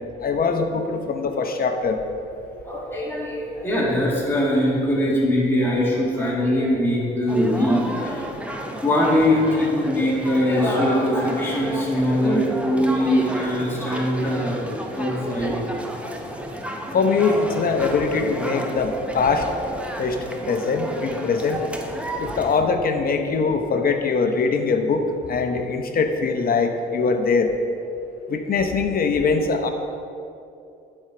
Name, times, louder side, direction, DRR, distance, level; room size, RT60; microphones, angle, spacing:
voice 1, 0.2-2.0 16.9-19.5 20.0-20.2 20.5-21.6 22.2-27.5 28.3-29.7, left 4 dB, 50° left, 6 dB, 0.9 m, -22 dB
voice 2, 2.7-8.2 8.8-14.6 14.9-15.6, left 1 dB, 10° left, -5 dB, 2.1 m, -22 dB
sound 1, 7.3-22.6, right 1 dB, 5° right, 0.8 m, -31 dB
11.0 x 4.5 x 5.0 m, 2.7 s
cardioid pair, 90°, 20 cm